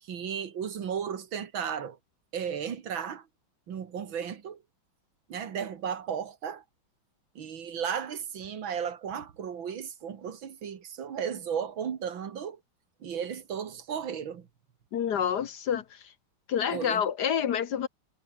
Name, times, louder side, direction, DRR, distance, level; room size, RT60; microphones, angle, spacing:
voice 1, 0.0-2.0 2.3-3.3 3.7-4.6 5.3-6.6 7.4-12.6 13.0-14.5 16.7-17.0, right 7 dB, 70° right, 2.4 m, -34 dB
voice 2, 14.9-15.8 16.5-17.9, left 8 dB, 60° left, 1.4 m, -28 dB
omnidirectional pair, 2.2 m